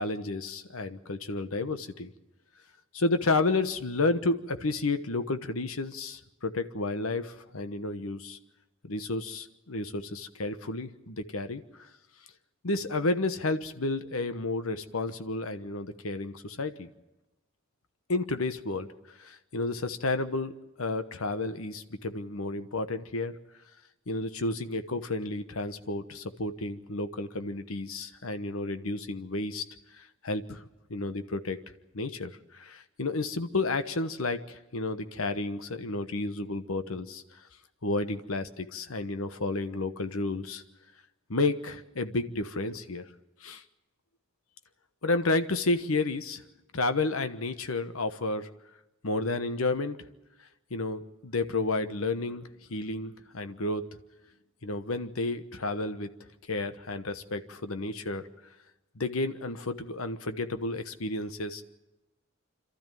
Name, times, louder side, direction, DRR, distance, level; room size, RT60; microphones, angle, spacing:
voice 1, 0.0-2.1 2.9-8.4 8.9-11.6 12.6-16.9 18.1-18.9 19.2-20.5 20.8-23.3 24.1-29.6 29.9-30.6 30.9-31.6 31.9-37.2 37.8-40.6 41.3-43.1 43.4-43.6 45.0-46.4 46.7-48.5 49.0-50.0 50.7-53.8 54.6-56.1 56.5-58.3 59.0-61.6, left 2 dB, 90° left, 10 dB, 1.2 m, -31 dB
27.0 x 13.0 x 9.1 m, 0.99 s
head